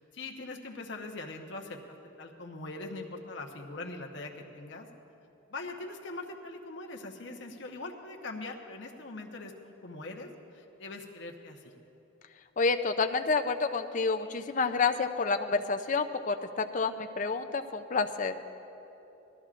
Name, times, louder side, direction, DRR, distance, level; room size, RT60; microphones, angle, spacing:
voice 1, 0.0-1.8 2.0-4.9 5.5-11.7, left 2 dB, 60° left, 2 dB, 0.9 m, -42 dB
voice 2, 12.6-18.3, left 4 dB, 40° left, 7 dB, 0.5 m, -29 dB
19.0 x 13.5 x 2.5 m, 3.0 s
head